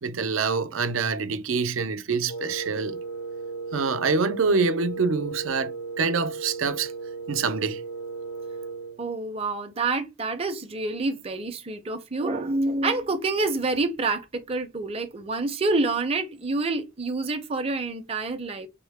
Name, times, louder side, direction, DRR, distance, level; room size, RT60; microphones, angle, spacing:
voice 1, 0.0-3.0 3.7-6.9 7.3-7.8, right 4 dB, 85° right, 0.5 m, -26 dB
Wind instrument woodwind instrument, 2.3-9.0, right 4 dB, 65° left, 0.5 m, -35 dB
voice 2, 9.0-18.7, right 3 dB, 30° right, 0.5 m, -27 dB
3.6 x 2.1 x 3.3 m
head